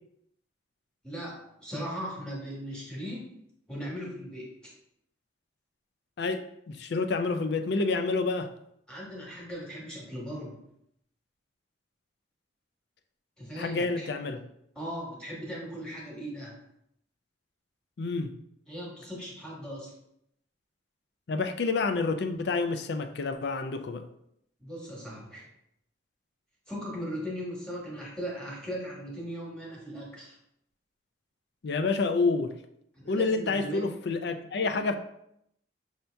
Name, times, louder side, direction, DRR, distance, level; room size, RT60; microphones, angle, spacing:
voice 1, 1.0-3.2 3.7-4.7 8.9-10.6 13.4-14.1 14.7-16.6 18.7-19.9 24.6-25.5 26.7-30.3 32.9-33.8, equal, 5° left, -4 dB, 1.2 m, -38 dB
voice 2, 6.2-8.5 13.6-14.4 18.0-18.3 21.3-24.1 31.6-32.5 33.1-35.0, left 3 dB, 60° left, 8 dB, 0.4 m, -28 dB
5.6 x 2.8 x 3.3 m, 0.75 s
head